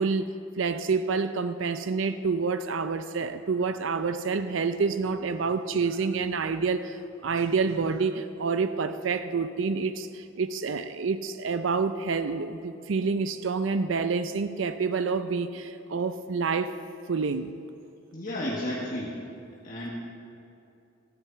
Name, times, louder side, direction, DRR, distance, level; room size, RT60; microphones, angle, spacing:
voice 1, 0.0-16.7 17.1-17.6, right 4 dB, 65° right, 10 dB, 0.5 m, -28 dB
voice 2, 18.1-19.1 19.6-19.9, left 1 dB, 40° left, -5 dB, 1.5 m, -32 dB
14.5 x 9.2 x 7.1 m, 2.7 s
head